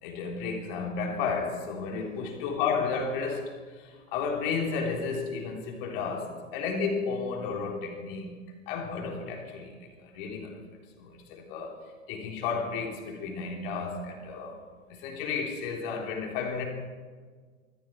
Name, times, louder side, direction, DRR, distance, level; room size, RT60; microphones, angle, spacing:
voice 1, 0.0-8.4 8.7-10.6 11.0-11.8 12.1-14.6 14.9-16.6, left 5 dB, 40° left, 1 dB, 3.7 m, -32 dB
20.5 x 14.5 x 4.7 m, 1.5 s
figure-of-eight pair, 110°, 41 cm